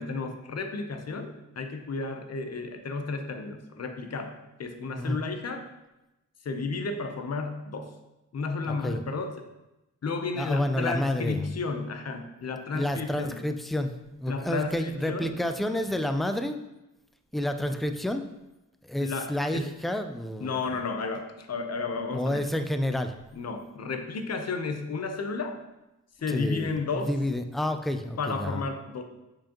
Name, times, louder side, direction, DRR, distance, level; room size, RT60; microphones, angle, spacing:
voice 1, 0.0-5.6 6.4-7.9 8.3-9.4 10.0-13.4 14.3-15.3 19.0-19.8 20.4-22.4 23.3-25.6 26.2-27.1 28.2-29.0, left 4 dB, 50° left, 6 dB, 0.8 m, -32 dB
voice 2, 8.7-9.0 10.4-11.4 12.7-16.6 17.3-18.2 18.8-20.6 22.1-23.1 26.3-28.6, left 1 dB, ahead, 7 dB, 0.4 m, -29 dB
7.3 x 4.9 x 3.0 m, 0.98 s
wide cardioid pair, 100°, 32 cm